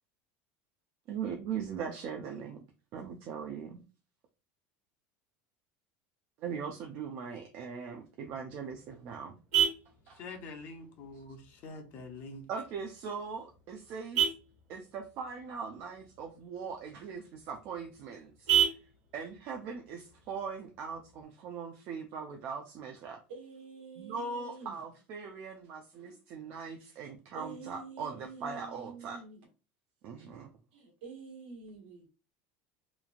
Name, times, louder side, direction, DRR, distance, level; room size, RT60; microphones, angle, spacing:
voice 1, 1.1-2.6 2.9-3.8 6.4-9.4 10.1-10.2 12.5-14.3 14.7-18.8 19.1-23.2 24.0-29.2 30.0-30.5, right 6 dB, 40° right, 0.4 m, -40 dB
Vehicle horn car horn honking, 8.3-21.3, right 9 dB, 55° right, 1.4 m, -36 dB
voice 2, 10.2-12.4, left 3 dB, 35° left, 0.6 m, -45 dB
voice 3, 23.3-24.8 27.3-29.4 30.7-32.1, right 4 dB, 70° right, 1.2 m, -47 dB
3.0 x 2.4 x 2.4 m
cardioid pair, 180°, 6 cm